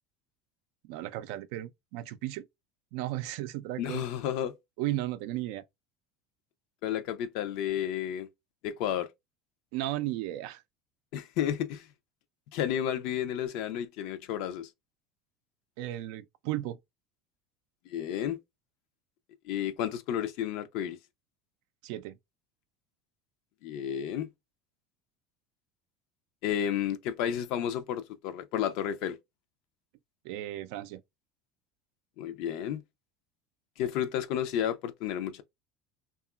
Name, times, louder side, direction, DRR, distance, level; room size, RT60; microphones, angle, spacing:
voice 1, 0.8-2.5 2.9-4.0 4.8-5.6 9.7-10.6 15.8-16.8 21.8-22.2 30.2-31.0, right 15 dB, 75° right, 0.3 m, -35 dB
voice 2, 3.8-4.6 6.8-8.3 8.6-9.1 11.1-11.9 12.5-14.7 17.9-18.4 19.4-21.0 23.6-24.3 26.4-29.2 32.2-32.8 33.8-35.4, left 10 dB, 70° left, 0.5 m, -32 dB
2.8 x 2.3 x 2.3 m
supercardioid pair, 100°, 0 cm